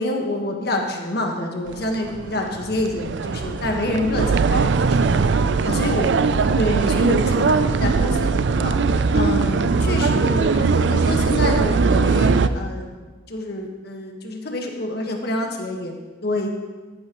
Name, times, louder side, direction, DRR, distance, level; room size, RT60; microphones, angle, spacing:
voice 1, 0.0-5.2 5.6-6.1 6.6-8.7 9.1-12.9 13.3-15.9 16.2-16.5, left 1 dB, 55° left, 2 dB, 1.5 m, -27 dB
sound 1, 1.7-12.5, right 4 dB, 60° right, 0.4 m, -20 dB
14.0 x 11.0 x 3.1 m, 1.3 s
head